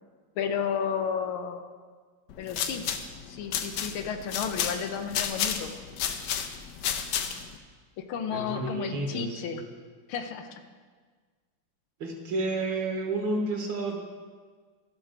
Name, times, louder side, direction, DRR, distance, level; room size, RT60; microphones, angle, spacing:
voice 1, 0.4-1.7 2.4-2.9 3.3-5.8 8.0-9.6 10.1-10.5, left 7 dB, 85° left, 7 dB, 1.7 m, -32 dB
sound 1, 2.3-7.6, left 8 dB, 65° left, 1.1 m, -32 dB
voice 2, 8.3-9.6 12.0-14.0, right 2 dB, 65° right, 2 dB, 2.0 m, -31 dB
14.0 x 6.0 x 5.0 m, 1.5 s
omnidirectional pair, 2.3 m